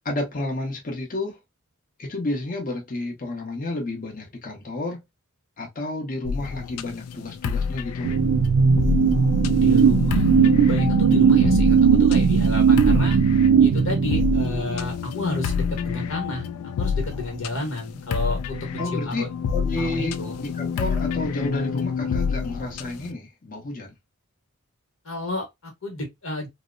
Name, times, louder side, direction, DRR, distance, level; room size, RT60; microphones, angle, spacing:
voice 1, 0.0-1.4 2.0-5.0 5.6-8.1 18.8-23.9, left 2 dB, 40° left, 0.7 m, -31 dB
sound 1, 6.3-23.1, left 6 dB, 80° left, 0.3 m, -28 dB
sound 2, 8.0-14.8, right 6 dB, 65° right, 0.3 m, -18 dB
voice 2, 9.4-13.2 13.6-16.4 16.8-19.3 19.8-20.4 25.0-26.5, left 1 dB, 60° left, 1.1 m, -31 dB
2.7 x 2.0 x 2.4 m
head